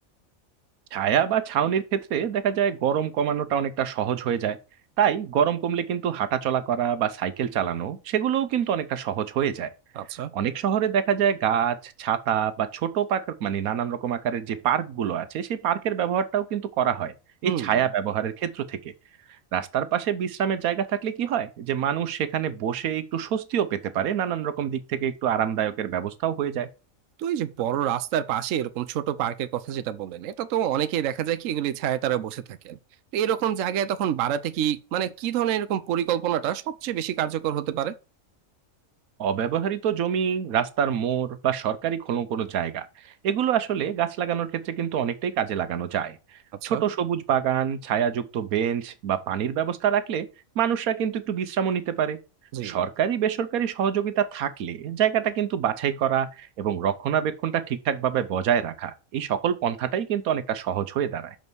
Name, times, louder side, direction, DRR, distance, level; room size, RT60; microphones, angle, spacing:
voice 1, 0.9-4.6 5.0-9.7 10.3-17.1 17.4-18.8 19.5-26.7 39.2-46.2 46.6-50.3 50.6-52.2 52.6-61.4, right 9 dB, 90° right, 1.3 m, -26 dB
voice 2, 10.0-10.3 17.4-17.8 27.2-32.8 33.1-37.9 46.6-46.8 52.5-52.8, right 10 dB, 70° right, 1.0 m, -27 dB
6.4 x 5.4 x 6.1 m
omnidirectional pair, 1.5 m